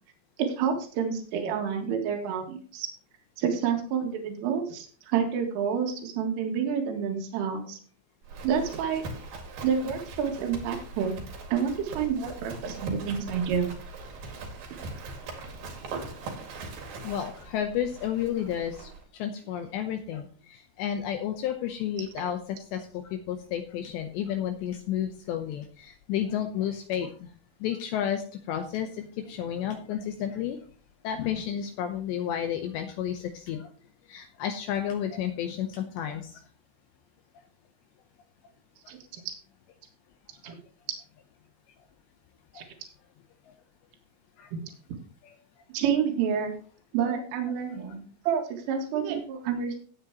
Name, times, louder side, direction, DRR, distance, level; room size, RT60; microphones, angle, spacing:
voice 1, 0.4-2.9 3.4-7.8 8.4-9.0 9.6-11.2 11.5-13.7 38.9-39.0 40.4-40.6 42.6-42.7 44.5-44.6 45.7-46.5 46.9-49.8, right 7 dB, 75° right, 3 dB, 4.3 m, -28 dB
Livestock farm animals working animals, 8.2-19.0, right 3 dB, 55° right, 3.2 m, -40 dB
voice 2, 17.0-22.4 22.7-27.3 27.6-30.6 31.0-33.7 34.1-36.4 40.5-40.6 42.5-42.6 43.5-43.6 44.4-44.5 45.2-45.4, left 9 dB, 80° left, 6 dB, 2.7 m, -32 dB
16.0 x 8.7 x 3.0 m, 0.42 s
omnidirectional pair, 5.9 m